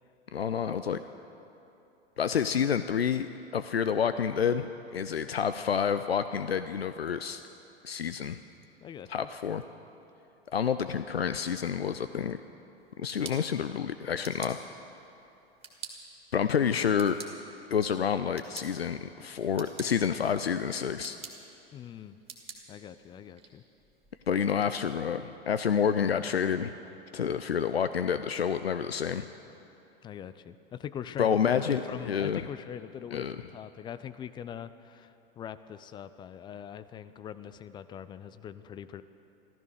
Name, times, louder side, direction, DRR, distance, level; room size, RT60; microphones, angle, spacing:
voice 1, 0.3-1.0 2.2-7.4 7.8-8.4 9.1-9.6 10.5-12.4 13.0-14.6 16.3-17.2 17.7-21.2 24.3-26.7 27.1-29.3 31.2-32.5 33.1-33.4, left 7 dB, 85° left, 11 dB, 0.5 m, -29 dB
voice 2, 8.8-9.3 21.7-22.2 22.7-23.6 30.0-39.0, left 9 dB, 15° left, 13 dB, 0.3 m, -42 dB
sound 1, 12.8-24.6, right 5 dB, 20° right, 2.1 m, -50 dB
14.0 x 14.0 x 6.5 m, 2.8 s
figure-of-eight pair, 90°, 30 cm